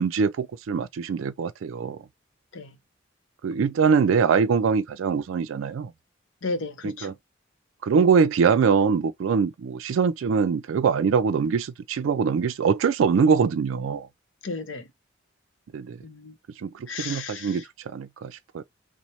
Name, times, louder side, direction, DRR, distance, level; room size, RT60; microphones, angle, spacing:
voice 1, 0.0-2.1 3.4-5.9 6.8-7.1 7.8-14.1 15.7-16.0 16.6-18.6, right 6 dB, 80° right, 0.4 m, -23 dB
voice 2, 6.4-7.1 14.4-14.8 16.0-16.3 16.9-17.5, left 3 dB, 75° left, 0.7 m, -33 dB
3.1 x 2.1 x 4.1 m
head